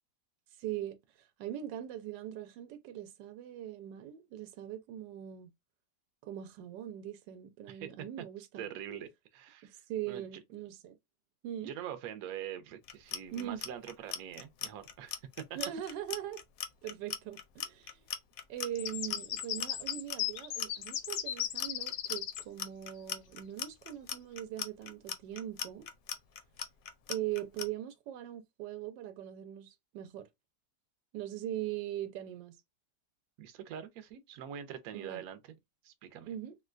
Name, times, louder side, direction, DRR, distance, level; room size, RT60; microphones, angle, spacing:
voice 1, 0.5-5.5 6.2-8.7 9.6-11.0 11.4-11.7 13.3-13.6 15.5-16.4 16.8-18.1 18.5-25.9 27.1-30.3 31.1-32.6 34.9-35.2 36.2-36.6, right 11 dB, 85° right, 1.2 m, -41 dB
voice 2, 8.6-9.8 10.1-10.2 11.6-15.4 33.4-35.4 35.8-36.3, right 9 dB, 65° right, 1.0 m, -44 dB
Clock, 12.8-27.7, left 8 dB, 70° left, 0.9 m, -39 dB
sound 1, 18.8-22.4, left 11 dB, 85° left, 1.3 m, -36 dB
3.7 x 2.2 x 2.4 m
omnidirectional pair, 1.9 m